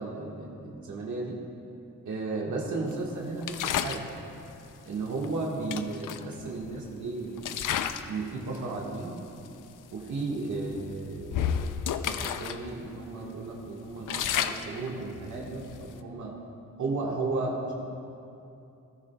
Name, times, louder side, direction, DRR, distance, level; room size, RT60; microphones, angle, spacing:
voice 1, 0.0-1.5 2.0-4.1 4.9-7.7 8.1-9.2 9.9-11.7 12.0-16.4 16.8-17.8, right 3 dB, 70° right, -3 dB, 1.6 m, -34 dB
sound 1, 3.4-4.1 5.2-5.3 5.7-6.9 7.4-8.2 8.5-8.8 9.5-9.6 9.9-10.1 10.7-12.6 12.9-13.0 13.5-16.0, left 9 dB, 80° left, 0.5 m, -32 dB
16.0 x 14.0 x 2.3 m, 2.7 s
cardioid pair, 100°, 31 cm